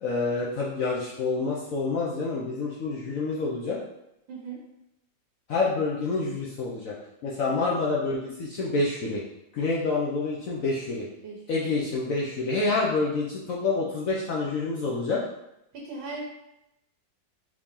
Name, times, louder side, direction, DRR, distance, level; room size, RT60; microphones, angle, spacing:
voice 1, 0.0-3.8 5.5-7.0 7.2-9.2 9.5-11.1 11.5-15.2, left 3 dB, 65° left, -5 dB, 0.8 m, -27 dB
voice 2, 4.3-4.6 7.5-7.7 11.2-11.4 15.7-16.2, right 4 dB, 90° right, -2 dB, 1.7 m, -38 dB
4.9 x 2.8 x 3.6 m, 0.85 s
omnidirectional pair, 2.1 m